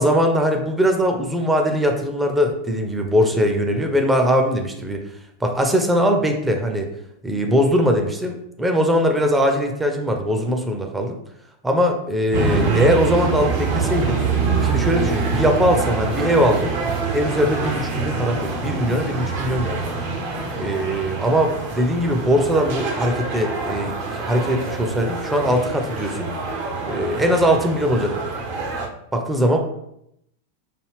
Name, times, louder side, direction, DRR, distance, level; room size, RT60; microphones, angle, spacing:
voice 1, 0.0-5.0 5.4-6.9 7.2-11.2 11.6-14.2 14.6-16.8 17.1-19.9 20.6-26.3 26.8-28.1 29.1-29.6, equal, 10° right, 3 dB, 0.6 m, -21 dB
sound 1, 12.3-28.9, right 4 dB, 50° right, 0.8 m, -25 dB
4.9 x 2.4 x 3.3 m, 0.78 s
figure-of-eight pair, 90°, 0 cm